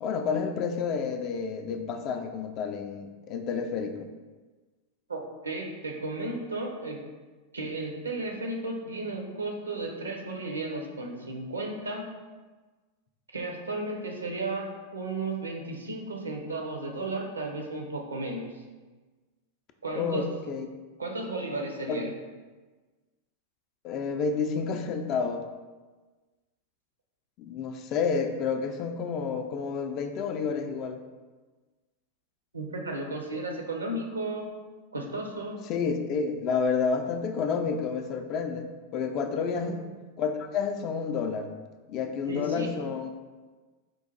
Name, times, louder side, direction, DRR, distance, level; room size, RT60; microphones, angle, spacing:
voice 1, 0.0-4.1 19.9-20.7 21.9-22.0 23.8-25.4 27.4-31.0 35.7-39.8 40.2-41.5 41.9-43.1, left 5 dB, 35° left, 6 dB, 0.4 m, -30 dB
voice 2, 5.1-7.0 7.5-12.1 13.3-18.6 19.8-20.3 21.0-22.1 32.5-34.5 34.9-35.6 39.5-39.7 42.3-42.7, right 2 dB, 75° right, 1 dB, 0.6 m, -34 dB
4.5 x 2.4 x 3.9 m, 1.3 s
figure-of-eight pair, 90°, 0 cm